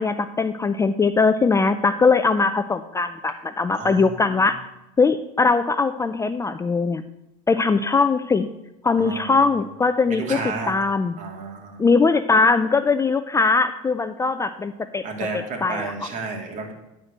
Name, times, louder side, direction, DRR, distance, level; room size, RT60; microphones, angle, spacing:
voice 1, 0.0-4.6 5.0-7.0 7.5-8.5 8.8-10.4 10.7-11.2 11.8-15.0 15.6-15.9, left 4 dB, 15° left, 10 dB, 0.4 m, -20 dB
voice 2, 3.7-4.2 8.9-9.4 10.1-10.7 11.2-11.8 15.0-16.7, right 3 dB, 45° right, 2 dB, 2.7 m, -31 dB
11.0 x 4.4 x 6.5 m, 0.92 s
supercardioid pair, 95°, 18 cm